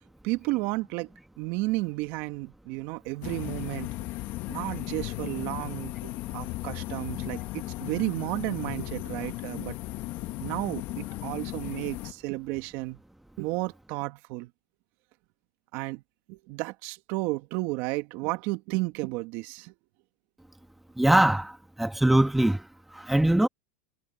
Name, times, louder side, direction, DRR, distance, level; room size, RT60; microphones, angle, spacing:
voice 1, 0.2-1.1 1.4-4.1 4.5-9.8 10.4-13.0 13.4-14.5 15.7-16.0 16.3-19.7, right 22 dB, 55° right, 2.0 m, -32 dB
sound 1, 3.2-12.1, left 18 dB, 50° left, 1.2 m, -36 dB
voice 2, 21.0-22.6 22.9-23.5, right 1 dB, 5° right, 1.3 m, -22 dB
supercardioid pair, 120°, 5 cm